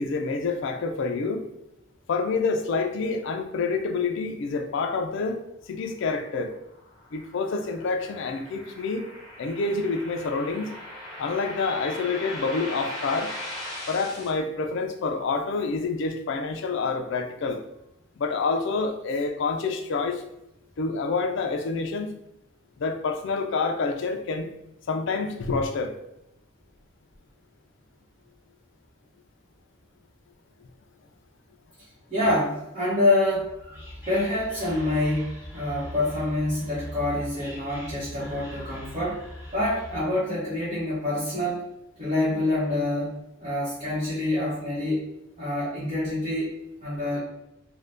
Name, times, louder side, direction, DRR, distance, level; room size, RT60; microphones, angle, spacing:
voice 1, 0.0-1.4 2.1-5.4 5.7-6.5 7.1-9.1 9.4-10.7 11.2-13.3 13.9-17.6 18.2-20.2 20.8-22.1 22.8-24.5 24.9-25.9, left 4 dB, 65° left, 5 dB, 0.4 m, -27 dB
sound 1, 6.5-14.3, left 1 dB, 20° left, 1.0 m, -39 dB
voice 2, 32.1-33.8 34.1-39.2 39.5-41.7 42.0-45.0 45.4-46.5 46.8-47.2, left 1 dB, 30° right, -11 dB, 0.9 m, -26 dB
Whispering, 33.3-40.2, left 1 dB, 10° right, 1.1 m, -41 dB
2.6 x 2.1 x 3.4 m, 0.85 s
head